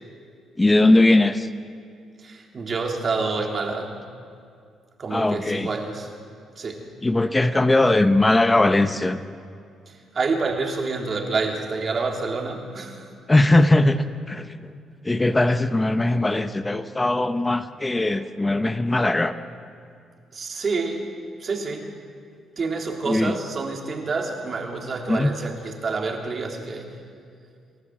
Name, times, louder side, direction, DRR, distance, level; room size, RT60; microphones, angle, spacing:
voice 1, 0.6-1.5 5.1-5.7 7.0-9.2 13.3-14.7 15.0-19.3 23.1-23.4 25.1-25.3, left 2 dB, 15° left, 10 dB, 0.9 m, -20 dB
voice 2, 2.2-4.0 5.0-6.1 6.6-6.9 9.9-13.1 20.3-21.1 21.4-21.9 22.6-26.9, right 4 dB, 45° right, 1 dB, 3.3 m, -28 dB
29.0 x 13.0 x 7.6 m, 2.3 s
cardioid pair, 90°, 0 cm